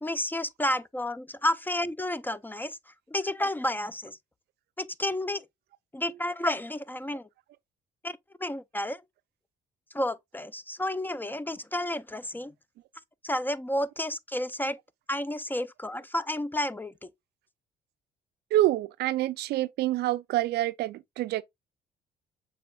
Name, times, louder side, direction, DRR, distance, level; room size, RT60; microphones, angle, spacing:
voice 1, 0.0-2.8 3.1-4.2 4.8-5.4 5.9-7.3 8.0-9.0 9.9-12.5 13.2-14.8 15.1-17.1, left 1 dB, 10° left, 0.4 m, -31 dB
voice 2, 18.5-21.4, right 15 dB, 70° right, 0.4 m, -27 dB
6.8 x 3.4 x 2.2 m
supercardioid pair, 65°, 17 cm